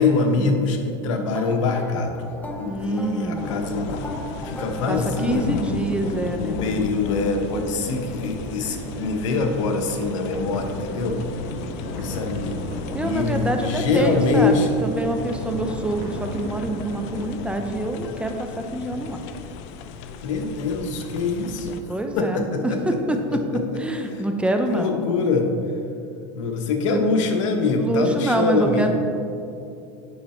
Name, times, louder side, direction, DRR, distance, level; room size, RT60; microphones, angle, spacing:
voice 1, 0.0-2.3 2.6-4.0 4.4-5.8 6.4-11.2 11.9-12.7 13.0-14.7 20.2-21.8 22.2-23.0 23.3-23.6 24.1-24.2 24.7-25.5 26.3-28.9, left 3 dB, 90° left, 5 dB, 1.0 m, -24 dB
sound 1, 1.3-5.9, equal, 10° left, 0.9 m, -37 dB
Crowd, 2.2-17.3, right 3 dB, 75° right, 1.2 m, -37 dB
voice 2, 2.6-3.7 4.9-6.6 12.9-19.2 21.9-23.4 23.8-25.1 26.9-27.0 27.8-29.0, right 1 dB, 5° right, 5 dB, 0.6 m, -26 dB
sound 2, 3.4-21.8, left 5 dB, 70° left, 0.6 m, -35 dB
8.9 x 5.7 x 4.3 m, 2.6 s
supercardioid pair, 125°, 16 cm